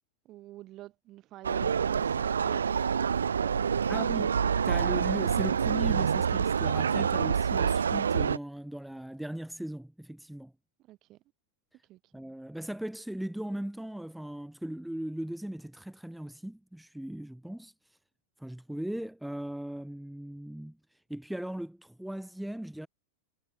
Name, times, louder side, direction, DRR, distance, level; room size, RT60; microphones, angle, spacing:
voice 1, 0.2-4.2 10.8-11.2 11.8-12.1, right 16 dB, 35° right, 2.2 m, -49 dB
sound 1, 1.4-8.4, right 7 dB, 70° right, 0.6 m, -27 dB
voice 2, 3.9-4.3 4.6-10.5 12.1-17.7 18.4-20.8 21.1-22.9, right 1 dB, ahead, 1.5 m, -38 dB
figure-of-eight pair, 90°, 0 cm